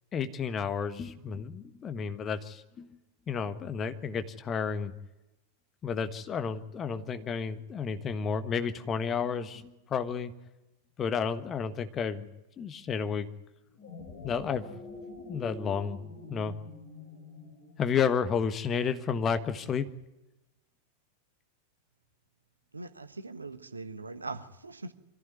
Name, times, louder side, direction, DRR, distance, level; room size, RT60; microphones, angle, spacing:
voice 1, 0.1-2.9 3.3-4.9 5.8-10.3 11.0-12.3 12.6-13.3 14.2-14.6 15.3-16.0 16.3-16.5 17.8-19.9, left 6 dB, 25° left, 10 dB, 1.4 m, -31 dB
sound 1, 13.7-18.2, left 3 dB, 45° left, 5.7 m, -46 dB
voice 2, 22.7-24.9, right 3 dB, 80° right, 10 dB, 1.3 m, -41 dB
24.0 x 15.0 x 9.5 m, 0.98 s
figure-of-eight pair, 90°, 0 cm